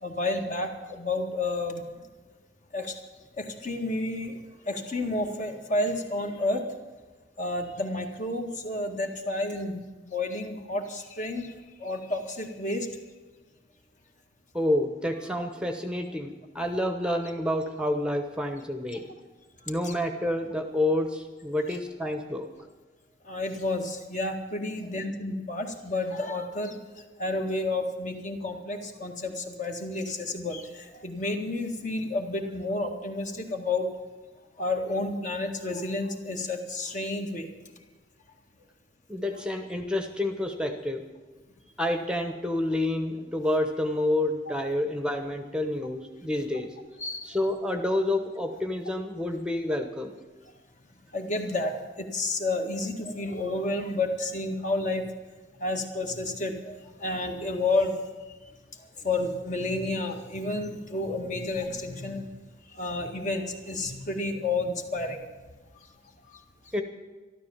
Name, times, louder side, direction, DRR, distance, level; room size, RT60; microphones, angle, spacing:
voice 1, 0.0-1.8 2.7-2.9 3.4-4.3 4.7-6.6 7.4-9.8 10.1-11.5 11.8-12.9 18.9-19.0 19.8-19.9 23.3-26.7 27.2-33.9 34.6-37.5 44.5-44.6 47.0-47.3 51.1-51.7 52.0-55.0 55.6-58.0 59.0-62.3 62.8-65.2, left 2 dB, 45° left, 3 dB, 1.9 m, -30 dB
voice 2, 14.5-19.0 19.7-22.5 39.1-41.0 41.8-46.7 47.3-50.1 66.7-66.8, left 1 dB, 5° right, 6 dB, 1.0 m, -28 dB
13.0 x 12.5 x 7.2 m, 1.3 s
head